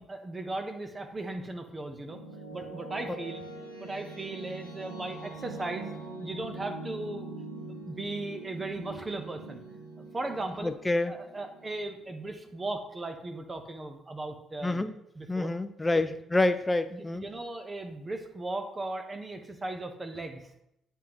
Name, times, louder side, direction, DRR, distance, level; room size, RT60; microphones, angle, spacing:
voice 1, 0.0-2.2 2.5-3.4 3.8-5.9 6.2-7.3 7.7-9.6 10.1-10.7 11.1-14.9 15.1-15.5 15.9-16.1 16.9-20.4, right 2 dB, 30° right, 5 dB, 0.9 m, -37 dB
sound 1, 1.7-12.5, right 2 dB, 90° right, 1.0 m, -43 dB
voice 2, 10.6-11.1 14.6-15.0 15.3-17.2, left 2 dB, 15° left, 10 dB, 0.6 m, -27 dB
10.5 x 3.6 x 3.0 m, 0.79 s
hypercardioid pair, 45°, 0 cm